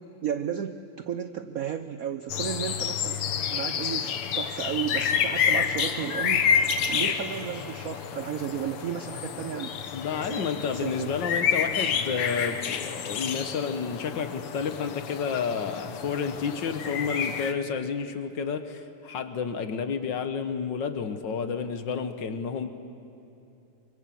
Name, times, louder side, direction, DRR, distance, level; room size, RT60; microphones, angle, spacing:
voice 1, 0.2-6.5 6.9-9.8 10.2-10.5 10.7-11.1, right 8 dB, 70° right, 9 dB, 0.8 m, -33 dB
sound 1, 2.3-17.5, left 7 dB, 85° left, 2.1 m, -29 dB
voice 2, 9.9-22.7, left 6 dB, 60° left, 9 dB, 1.7 m, -30 dB
25.0 x 24.5 x 7.7 m, 2.9 s
omnidirectional pair, 2.4 m